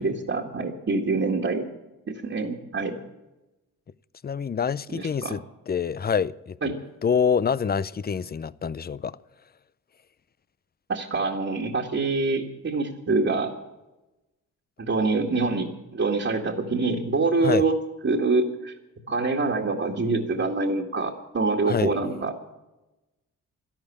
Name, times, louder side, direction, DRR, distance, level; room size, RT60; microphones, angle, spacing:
voice 1, 0.0-1.7 2.1-3.0 4.9-5.4 6.6-6.8 10.9-13.5 14.8-17.8 18.0-18.7 19.1-22.3, right 3 dB, 40° right, 2.0 m, -25 dB
voice 2, 4.2-5.4 5.7-6.7 7.0-9.2 17.4-17.6 21.7-21.9, left 6 dB, 30° left, 0.5 m, -26 dB
12.5 x 12.0 x 8.7 m
supercardioid pair, 55°, 34 cm